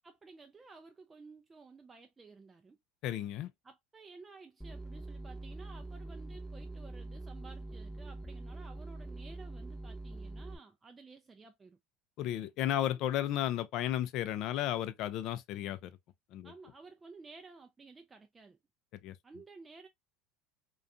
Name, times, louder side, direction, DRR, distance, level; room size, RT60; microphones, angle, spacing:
voice 1, 0.0-2.8 3.6-11.8 16.4-18.6 19.2-19.9, right 4 dB, 20° right, 0.4 m, -54 dB
voice 2, 3.0-3.5 12.2-15.9 16.3-16.5 19.0-19.2, left 12 dB, 60° left, 0.4 m, -33 dB
sound 1, 4.6-10.6, right 2 dB, ahead, 0.7 m, -44 dB
2.5 x 2.3 x 2.4 m
supercardioid pair, 95°, 0 cm